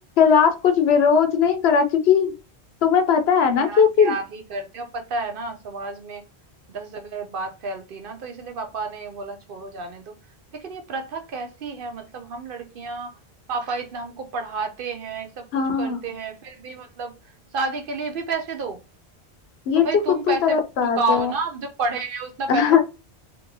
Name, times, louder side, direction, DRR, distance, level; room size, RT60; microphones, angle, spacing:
voice 1, 0.2-2.3 2.8-4.1 15.5-16.1 19.7-19.8 20.3-21.3 22.5-22.8, left 7 dB, 75° left, 0.8 m, -18 dB
voice 2, 3.6-6.2 6.7-10.1 10.5-13.1 13.5-17.1 17.5-18.8 19.7-20.6 20.9-22.8, right 3 dB, 60° right, 0.7 m, -30 dB
2.9 x 2.6 x 2.6 m
omnidirectional pair, 1.1 m